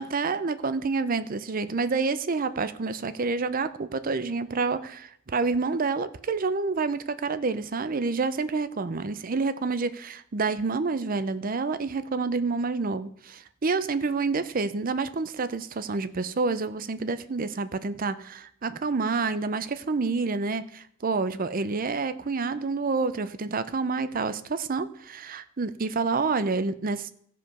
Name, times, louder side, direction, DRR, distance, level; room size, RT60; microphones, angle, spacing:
voice 1, 0.0-27.1, right 4 dB, 45° right, 13 dB, 0.6 m, -28 dB
15.5 x 5.3 x 5.5 m, 0.67 s
head